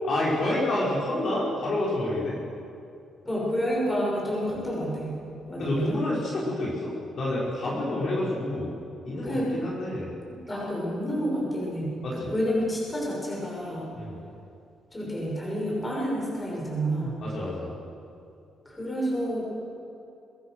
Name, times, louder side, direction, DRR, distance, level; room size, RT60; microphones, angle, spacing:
voice 1, 0.1-2.4 5.6-8.8 9.0-10.1 12.0-12.3 13.9-14.2 17.2-17.7, left 1 dB, 45° left, -6 dB, 5.6 m, -28 dB
voice 2, 3.2-5.2 5.5-6.1 9.2-9.5 10.2-13.9 14.9-17.2 18.6-19.4, equal, 10° left, -4 dB, 6.5 m, -29 dB
23.5 x 21.5 x 6.4 m, 2.5 s
cardioid pair, 175°, 0 cm